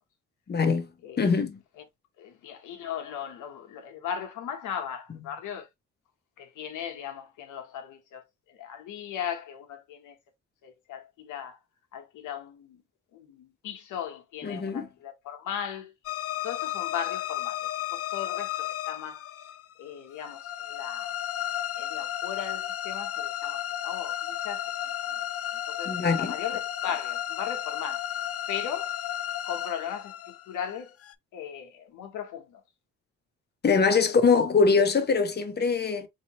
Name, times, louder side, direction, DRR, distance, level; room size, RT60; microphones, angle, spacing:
voice 1, 0.5-0.9 1.2-1.6 14.4-14.9 25.9-26.3 33.6-36.1, left 5 dB, 35° left, 1.0 m, -23 dB
voice 2, 2.2-5.7 6.4-10.2 10.6-11.6 11.9-12.8 13.1-15.9 16.4-19.2 19.8-21.1 21.8-25.2 25.5-28.1 28.5-28.9 29.4-30.9 31.3-32.6 34.0-34.1, left 8 dB, 85° left, 1.2 m, -38 dB
sound 1, 16.0-31.1, left 12 dB, 50° left, 0.5 m, -33 dB
4.1 x 2.9 x 2.9 m
cardioid pair, 90°, 30 cm